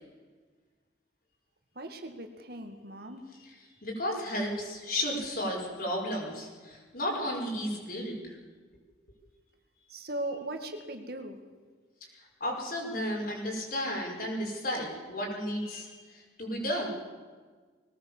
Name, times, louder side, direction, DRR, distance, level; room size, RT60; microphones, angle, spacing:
voice 1, 1.8-3.2 9.9-11.4, right 1 dB, 55° right, 6 dB, 2.0 m, -38 dB
voice 2, 3.8-8.4 12.4-16.9, equal, 55° left, 0 dB, 5.8 m, -33 dB
21.0 x 18.5 x 7.4 m, 1.4 s
head